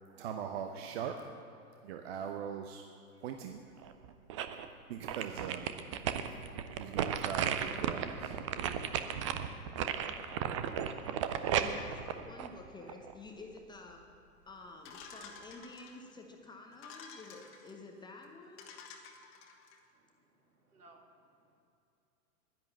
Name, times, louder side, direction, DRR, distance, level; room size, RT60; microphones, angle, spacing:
voice 1, 0.1-1.2 1.8-2.9 3.2-3.6 4.9-5.7 6.8-8.3, right 8 dB, 45° right, 5 dB, 0.8 m, -40 dB
sound 1, 3.8-4.7 5.1-13.1 13.6-13.7, right 9 dB, 25° right, 0.4 m, -35 dB
voice 2, 10.9-14.1 14.5-18.7, left 3 dB, 10° left, 2 dB, 0.9 m, -51 dB
sound 2, 14.8-16.2 16.7-17.7 18.2-18.3 18.6-19.8, left 5 dB, 30° left, 1.4 m, -51 dB
voice 3, 19.9-21.6, right 2 dB, 75° right, 2 dB, 2.2 m, -63 dB
10.5 x 10.5 x 7.1 m, 2.6 s
figure-of-eight pair, 105°, 45 cm